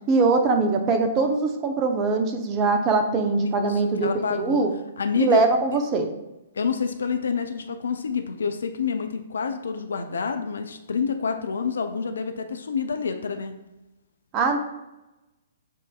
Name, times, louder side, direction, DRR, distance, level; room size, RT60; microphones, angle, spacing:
voice 1, 0.1-4.7 5.2-6.1 14.3-14.6, right 3 dB, 30° right, 5 dB, 0.5 m, -22 dB
voice 2, 3.6-4.6 5.0-5.4 6.6-13.5, left 6 dB, 65° left, 8 dB, 0.3 m, -28 dB
7.4 x 2.5 x 2.4 m, 0.98 s
figure-of-eight pair, 120°, 0 cm